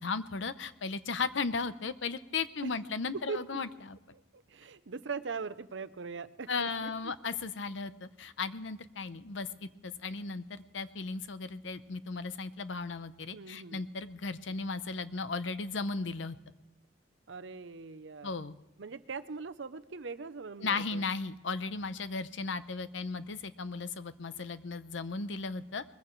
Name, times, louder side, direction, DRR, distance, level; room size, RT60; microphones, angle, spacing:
voice 1, 0.0-4.0 6.5-16.4 18.2-18.5 20.6-25.8, left 4 dB, 80° left, 13 dB, 0.8 m, -36 dB
voice 2, 3.1-3.6 4.1-7.1 13.3-13.8 17.3-18.4 18.8-21.0, right 4 dB, 80° right, 11 dB, 0.7 m, -41 dB
21.0 x 15.0 x 3.2 m, 1.0 s
head